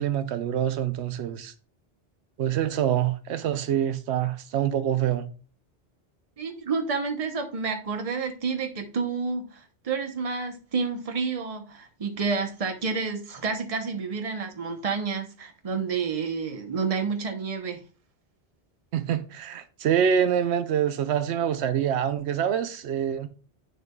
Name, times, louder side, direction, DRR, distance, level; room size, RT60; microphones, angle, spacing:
voice 1, 0.0-1.5 2.4-5.3 18.9-23.3, right 9 dB, 85° right, 0.9 m, -26 dB
voice 2, 6.4-17.8, right 5 dB, 35° right, 0.8 m, -29 dB
8.5 x 6.6 x 2.3 m
omnidirectional pair, 1.1 m